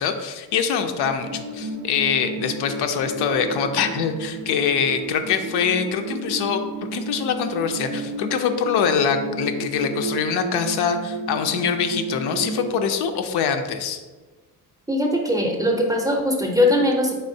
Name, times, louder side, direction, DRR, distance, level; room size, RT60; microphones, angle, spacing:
voice 1, 0.0-14.0, left 7 dB, 80° left, 7 dB, 0.5 m, -24 dB
sound 1, 1.0-12.9, right 3 dB, 75° right, 0.5 m, -32 dB
voice 2, 14.9-17.1, left 1 dB, 10° right, 0 dB, 0.5 m, -20 dB
4.2 x 3.5 x 2.6 m, 1.3 s
cardioid pair, 115°, 38 cm